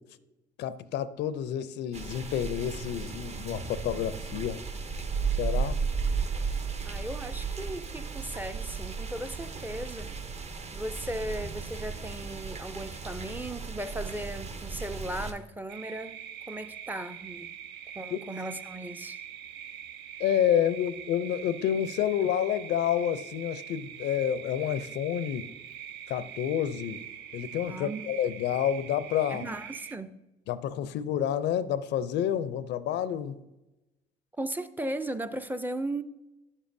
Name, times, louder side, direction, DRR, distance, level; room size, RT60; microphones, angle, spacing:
voice 1, 0.6-4.6 5.4-5.8 18.1-18.2 20.2-25.5 26.1-27.0 27.3-29.5 30.5-33.4, left 10 dB, 70° left, 0.5 m, -29 dB
sound 1, 1.9-15.3, right 5 dB, 35° right, 0.7 m, -34 dB
voice 2, 6.8-10.1 10.7-17.5 17.9-19.2 27.7-28.0 29.3-30.2 34.4-36.0, right 1 dB, 10° right, 0.4 m, -37 dB
sound 2, 15.7-30.0, right 10 dB, 75° right, 0.5 m, -43 dB
9.6 x 7.2 x 2.6 m
supercardioid pair, 70°, 18 cm